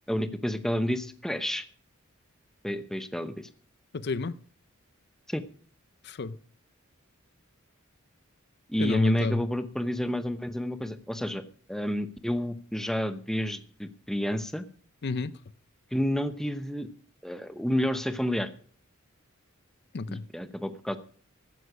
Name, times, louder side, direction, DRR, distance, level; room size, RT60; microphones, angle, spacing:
voice 1, 0.1-1.7 2.6-3.5 5.3-5.4 8.7-11.4 11.7-14.6 15.9-16.9 17.2-18.5 20.1-21.0, equal, ahead, 0.9 m, -30 dB
voice 2, 3.9-4.4 6.0-6.4 8.8-9.4 15.0-15.3 19.9-20.3, left 3 dB, 55° left, 0.5 m, -30 dB
15.0 x 9.5 x 5.0 m
head